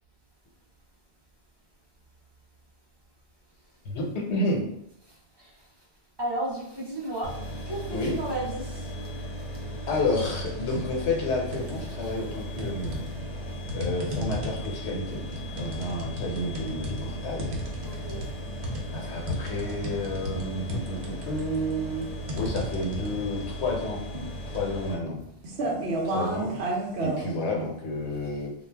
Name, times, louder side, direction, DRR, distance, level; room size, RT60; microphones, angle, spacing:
voice 1, 3.8-4.7 7.9-8.2 9.9-13.0 13.7-15.2 15.5-17.5 18.9-22.1 22.4-24.0 24.5-25.2 26.0-26.6 27.0-28.5, left 2 dB, 75° left, -2 dB, 1.0 m, -30 dB
voice 2, 5.1-5.6 6.2-9.1 11.7-12.1 17.8-18.3, right 1 dB, 30° right, -5 dB, 0.6 m, -34 dB
sound 1, 7.2-24.9, equal, 50° left, 0.5 m, -37 dB
sound 2, 10.5-10.7 11.1-12.0 12.6-27.3, right 1 dB, 70° right, 0.9 m, -33 dB
2.4 x 2.1 x 3.3 m, 0.77 s
omnidirectional pair, 1.2 m